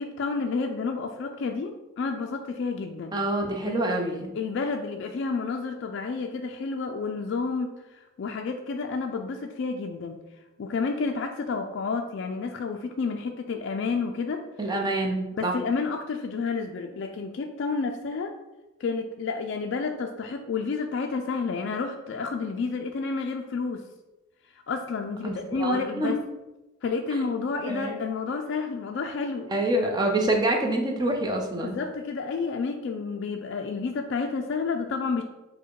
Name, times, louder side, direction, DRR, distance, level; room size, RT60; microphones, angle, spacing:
voice 1, 0.0-3.1 3.6-3.8 4.3-7.7 8.2-10.2 10.6-14.4 15.3-18.3 18.8-23.8 24.7-26.2 26.8-29.5 31.6-35.2, left 4 dB, 55° left, 3 dB, 0.3 m, -30 dB
voice 2, 3.1-4.4 14.6-15.6 25.2-26.1 27.7-27.9 29.5-31.8, right 1 dB, 20° right, 1 dB, 0.5 m, -26 dB
4.6 x 2.1 x 4.5 m, 1.0 s
head